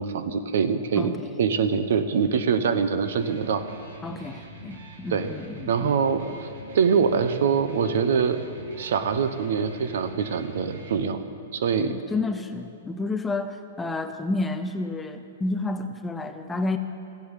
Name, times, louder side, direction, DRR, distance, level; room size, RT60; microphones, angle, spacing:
voice 1, 0.0-1.1 1.4-3.6 5.1-5.3 5.7-6.5 6.7-8.4 8.8-11.2 11.5-11.9, right 6 dB, 65° right, 11 dB, 0.9 m, -24 dB
voice 2, 1.0-1.3 4.0-5.9 11.8-16.8, left 2 dB, 5° left, 8 dB, 0.4 m, -30 dB
Electric guitar, 2.9-10.9, right 1 dB, 90° right, 3.0 m, -44 dB
15.0 x 8.4 x 8.3 m, 2.7 s
hypercardioid pair, 170°, 0 cm